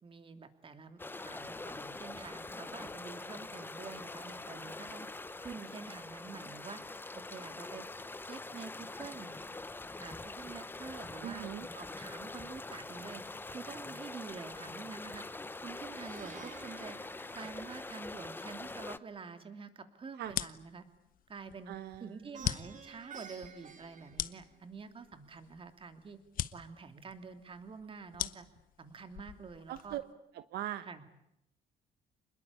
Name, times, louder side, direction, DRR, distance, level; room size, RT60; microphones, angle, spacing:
voice 1, 0.0-5.1 5.4-6.8 7.3-7.8 8.2-9.4 10.0-13.2 13.5-15.2 15.6-17.0 17.3-20.8 21.3-26.2 26.5-28.5 28.8-30.0 30.8-31.2, right 5 dB, 30° right, 8 dB, 2.9 m, -47 dB
sound 1, 1.0-19.0, left 2 dB, 10° left, 0.9 m, -44 dB
voice 2, 11.2-11.7 20.2-20.3 21.7-22.2 29.7-30.0 30.3-30.9, right 13 dB, 75° right, 12 dB, 1.2 m, -40 dB
Plucked string instrument, 16.0-18.2 22.3-24.9, right 7 dB, 45° right, 2.7 m, -52 dB
sound 2, 20.2-30.1, left 11 dB, 55° left, 1.0 m, -42 dB
27.5 x 21.0 x 8.6 m, 0.80 s
cardioid pair, 110°, 17 cm